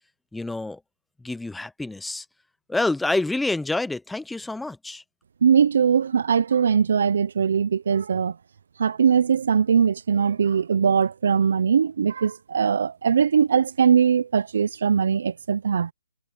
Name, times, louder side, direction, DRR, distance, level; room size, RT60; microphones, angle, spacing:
voice 1, 0.3-0.8 1.2-2.2 2.7-5.0, left 2 dB, 5° left, 0.7 m, -27 dB
voice 2, 5.4-8.4 8.8-15.9, right 7 dB, 65° right, 0.5 m, -21 dB
hypercardioid pair, 155°, 0 cm